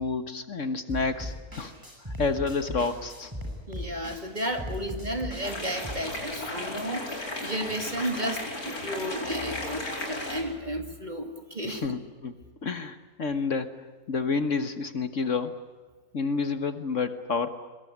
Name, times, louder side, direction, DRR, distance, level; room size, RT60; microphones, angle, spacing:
voice 1, 0.0-1.7 2.2-3.3 11.6-12.3 12.6-13.7 14.1-15.5 16.1-17.5, left 4 dB, 55° left, 10 dB, 1.7 m, -29 dB
sound 1, 0.9-5.9, left 1 dB, 10° right, 6.2 m, -38 dB
voice 2, 3.7-12.0, equal, 30° right, 6 dB, 2.4 m, -33 dB
sound 2, 5.4-10.4, left 2 dB, 70° left, 5.1 m, -35 dB
23.0 x 22.5 x 9.5 m, 1.3 s
omnidirectional pair, 1.6 m